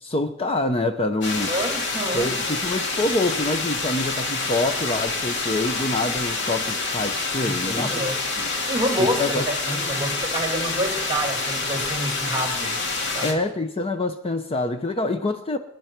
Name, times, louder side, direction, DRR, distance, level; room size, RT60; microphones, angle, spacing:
voice 1, 0.0-1.5 2.1-7.9 9.0-9.5 13.2-15.6, left 2 dB, 30° left, 7 dB, 0.7 m, -26 dB
sound 1, 1.2-13.3, left 3 dB, 60° left, 2.7 m, -27 dB
voice 2, 1.5-2.3 7.4-8.2 8.7-12.8 13.1-13.4, right 1 dB, 20° right, 3 dB, 2.3 m, -28 dB
26.5 x 10.5 x 4.6 m, 0.89 s
head